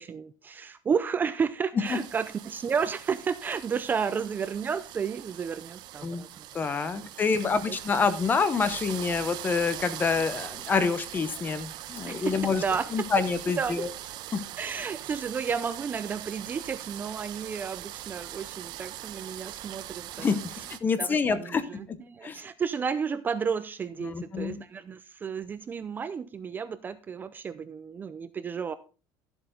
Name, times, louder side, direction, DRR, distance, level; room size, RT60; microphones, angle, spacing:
voice 1, 0.0-6.5 7.0-7.1 7.4-7.8 12.1-13.1 13.6-13.9 14.6-20.4 21.0-28.7, right 6 dB, 20° right, 13 dB, 0.5 m, -32 dB
sound 1, 1.8-20.8, right 13 dB, 55° right, 0.9 m, -41 dB
voice 2, 6.5-12.6 12.9-13.9 14.3-14.4 20.2-21.6 21.9-22.0 22.2-22.4 24.0-24.6, left 5 dB, 20° left, 13 dB, 0.9 m, -27 dB
13.0 x 7.9 x 3.9 m, 0.34 s
cardioid pair, 160°, 9 cm